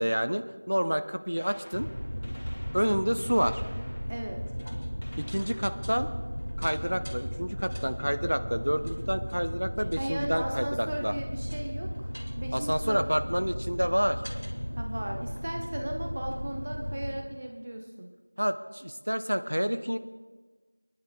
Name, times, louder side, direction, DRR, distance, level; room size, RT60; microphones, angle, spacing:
voice 1, 0.0-1.9 2.7-3.6 5.2-6.1 6.6-11.2 12.5-14.2 18.4-20.0, equal, 65° right, 11 dB, 0.6 m, -28 dB
Gunshot gunfire, 1.4-7.1 9.0-9.2 10.2-10.3 11.9-12.0 13.3-13.4 13.6-13.7, equal, 35° left, 2.1 m, -51 dB
sound 1, 1.7-17.2, equal, 80° left, 2.3 m, -35 dB
voice 2, 4.1-4.4 10.0-13.0 14.8-18.1, right 1 dB, 15° right, 3 dB, 0.3 m, -36 dB
25.0 x 10.5 x 2.3 m, 1.4 s
figure-of-eight pair, 180°, 0 cm